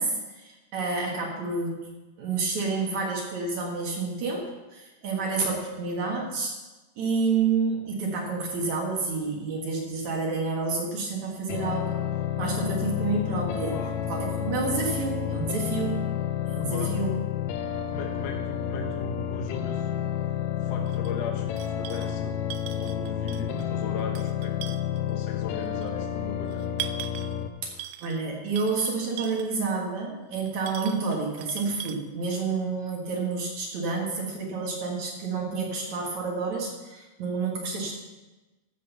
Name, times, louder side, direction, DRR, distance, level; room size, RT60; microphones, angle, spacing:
voice 1, 0.0-1.9 2.2-6.5 7.0-12.0 12.4-13.8 14.1-16.1 16.5-17.1 28.0-37.9, right 4 dB, 55° right, 0 dB, 2.5 m, -29 dB
sound 1, 11.5-27.5, left 9 dB, 85° left, 1.9 m, -30 dB
voice 2, 13.7-14.0 16.6-17.0 17.9-20.2 20.5-22.4 22.7-26.7, left 4 dB, 60° left, 2 dB, 2.0 m, -38 dB
sound 2, 20.9-21.1 21.6-22.2 22.5-23.6 24.0-25.1 25.8-25.9 26.5-27.4 27.8-28.2 28.6-29.6 30.5-32.0, right 12 dB, 90° right, 2.6 m, -40 dB
13.5 x 5.3 x 7.1 m, 1.1 s
omnidirectional pair, 4.6 m